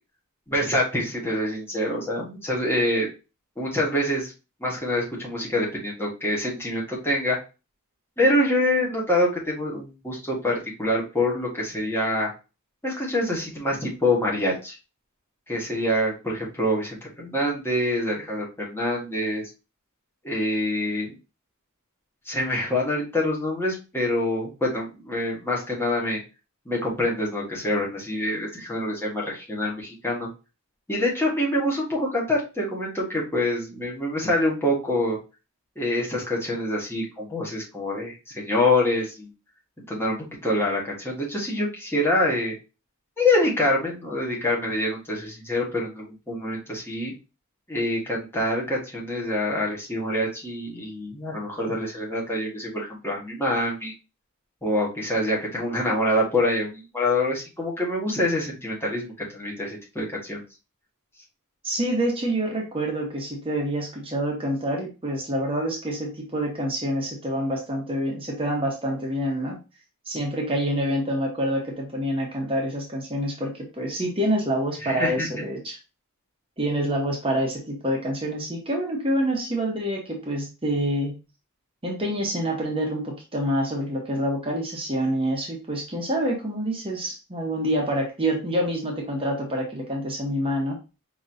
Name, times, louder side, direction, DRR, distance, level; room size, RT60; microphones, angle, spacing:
voice 1, 0.5-3.1 3.6-4.3 4.6-7.4 8.2-12.3 12.8-14.8 15.5-19.5 20.2-21.1 22.2-26.2 26.6-30.3 30.9-35.2 35.8-39.3 39.9-42.5 43.2-47.1 47.7-53.9 54.6-60.4 74.8-75.4, left 1 dB, 10° left, -4 dB, 1.4 m, -26 dB
voice 2, 61.6-69.6 70.1-75.8 76.6-81.2 81.8-90.8, equal, 25° right, -1 dB, 1.0 m, -27 dB
5.3 x 3.0 x 2.5 m, 0.30 s
head